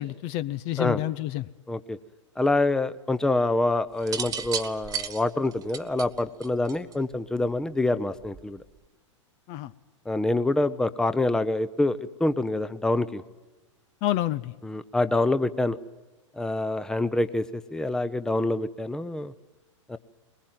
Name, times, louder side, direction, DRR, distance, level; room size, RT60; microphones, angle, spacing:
voice 1, 0.0-1.5 9.5-9.7 14.0-14.5, left 14 dB, 40° left, 16 dB, 0.7 m, -29 dB
voice 2, 1.7-2.0 2.4-8.6 10.1-13.2 14.6-15.8 16.4-19.3 19.9-20.0, left 2 dB, 5° left, 14 dB, 0.8 m, -26 dB
sound 1, 4.0-7.1 8.2-8.6, right 7 dB, 20° right, 1.5 m, -34 dB
21.5 x 20.0 x 9.4 m, 1.2 s
figure-of-eight pair, 105°, 16 cm